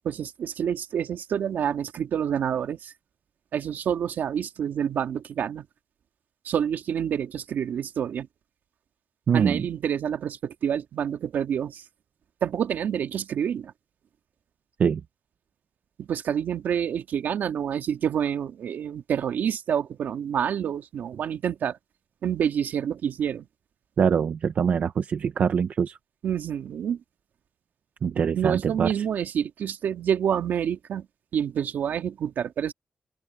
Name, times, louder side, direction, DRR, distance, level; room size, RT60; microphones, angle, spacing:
voice 1, 0.0-2.9 3.5-5.7 6.4-8.3 9.3-11.8 12.4-13.7 16.0-21.8 22.2-23.5 26.2-27.0 28.4-31.1 31.3-32.7, right 8 dB, 65° right, 2.2 m, -28 dB
voice 2, 9.3-9.7 14.8-15.0 24.0-26.0 28.0-29.0, right 7 dB, 50° right, 0.7 m, -24 dB
open air
wide cardioid pair, 160°, 3 cm